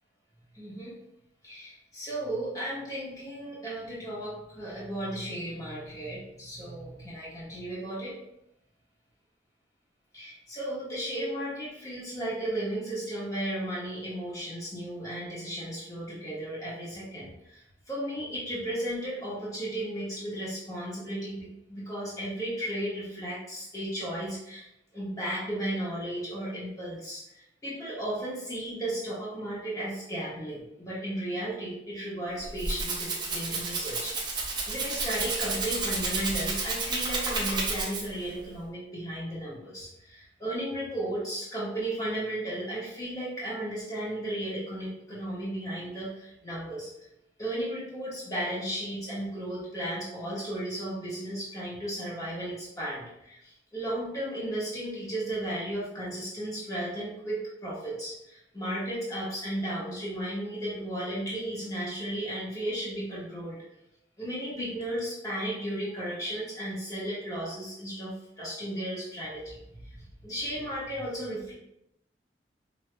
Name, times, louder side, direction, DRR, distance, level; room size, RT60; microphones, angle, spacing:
voice 1, 0.5-0.9 1.4-8.1 10.1-24.6 24.9-34.1 34.7-46.9 47.4-63.6 64.2-71.5, right 1 dB, 20° left, -8 dB, 1.3 m, -35 dB
Rattle (instrument), 32.3-38.3, right 3 dB, 25° right, 0.7 m, -31 dB
5.1 x 2.6 x 2.2 m, 0.82 s
head